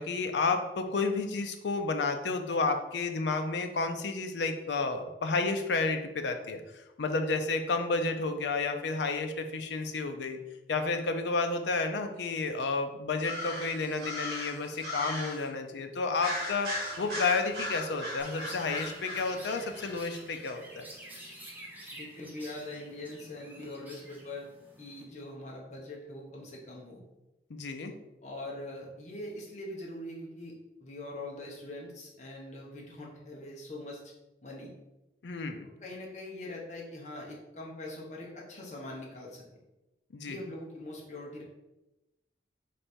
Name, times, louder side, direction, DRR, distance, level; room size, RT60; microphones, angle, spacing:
voice 1, 0.0-10.4 10.7-16.7 17.0-20.9 27.5-27.9 35.2-35.7 40.1-40.4, left 3 dB, 80° left, 6 dB, 0.5 m, -31 dB
sound 1, 13.2-15.5 16.2-20.2, left 1 dB, 60° right, 1.4 m, -38 dB
Chirp tweet, 18.2-25.0, right 1 dB, 10° right, 0.7 m, -49 dB
voice 2, 21.9-24.5 24.8-27.0 28.2-34.0 34.4-34.7 35.8-39.6 40.2-41.4, left 1 dB, 40° left, -3 dB, 1.0 m, -42 dB
3.3 x 3.3 x 4.2 m, 0.97 s
head